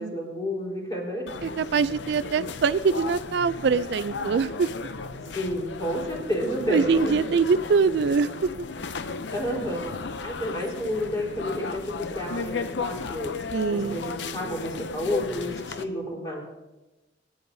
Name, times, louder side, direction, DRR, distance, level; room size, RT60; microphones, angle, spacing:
voice 1, 0.0-1.3 5.3-6.9 9.3-9.9 10.2-13.3 13.7-16.4, equal, 20° left, -3 dB, 3.9 m, -30 dB
sound 1, 1.3-15.8, left 4 dB, 75° left, 0.6 m, -35 dB
voice 2, 1.4-4.7 6.7-8.5 13.5-14.0, right 5 dB, 65° right, 14 dB, 0.4 m, -23 dB
25.5 x 10.5 x 2.7 m, 1.1 s
head